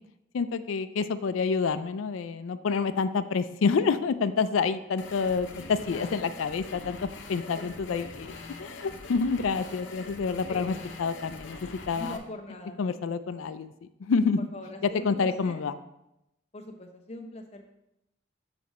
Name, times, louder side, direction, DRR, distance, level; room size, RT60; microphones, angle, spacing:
voice 1, 0.3-7.0 7.3-8.0 8.6-11.6 11.9-12.2 12.8-13.7 14.0-14.4 15.0-15.7, left 5 dB, 85° left, 12 dB, 0.4 m, -28 dB
sound 1, 5.0-12.2, left 3 dB, 65° left, 0.8 m, -43 dB
voice 2, 10.5-10.8 11.9-12.8 14.4-15.6 16.5-17.7, left 1 dB, 30° left, 3 dB, 0.8 m, -41 dB
7.7 x 4.9 x 4.1 m, 0.87 s
head